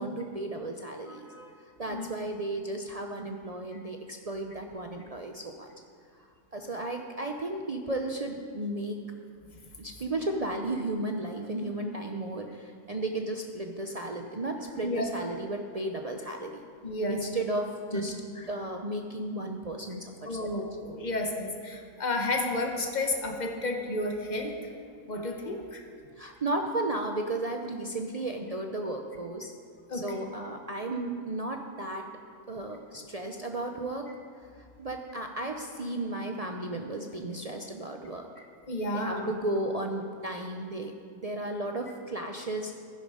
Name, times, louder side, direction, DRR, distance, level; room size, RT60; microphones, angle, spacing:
voice 1, 0.0-5.7 6.5-9.0 9.8-16.6 17.1-18.1 18.5-20.4 26.2-29.5 29.9-32.1 32.5-34.1 34.6-38.3 38.9-42.8, right 2 dB, 50° right, 3 dB, 0.4 m, -34 dB
voice 2, 16.8-17.4 17.9-18.0 18.4-18.5 20.2-24.7 25.1-25.8 29.9-30.0 38.7-39.3, left 2 dB, 30° left, 3 dB, 1.2 m, -31 dB
12.5 x 10.5 x 5.0 m, 2.2 s
omnidirectional pair, 1.6 m